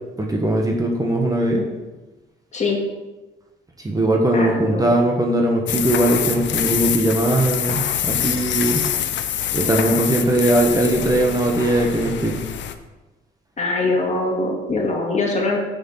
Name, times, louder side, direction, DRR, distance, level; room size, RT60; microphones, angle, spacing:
voice 1, 0.2-1.6 3.8-8.8 9.5-12.4, right 1 dB, 20° right, 0 dB, 1.3 m, -20 dB
voice 2, 4.3-5.0 13.6-15.6, left 2 dB, 35° left, 0 dB, 2.1 m, -22 dB
sound 1, 5.7-12.7, left 10 dB, 65° left, 0.7 m, -25 dB
6.5 x 6.5 x 5.6 m, 1.1 s
cardioid pair, 90°, 20 cm